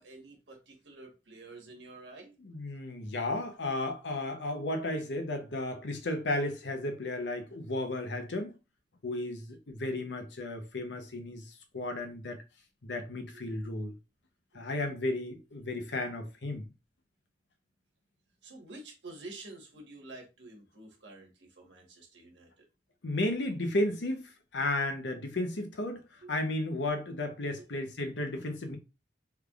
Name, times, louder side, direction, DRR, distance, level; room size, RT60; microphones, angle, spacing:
voice 1, 0.0-2.4 13.3-13.4 18.4-22.6 26.2-26.4 27.6-27.7, right 2 dB, 85° right, 1.3 m, -49 dB
voice 2, 2.4-8.5 9.0-12.4 12.8-13.9 14.5-16.6 23.0-28.8, left 2 dB, 85° left, 0.8 m, -34 dB
3.4 x 3.3 x 2.4 m
head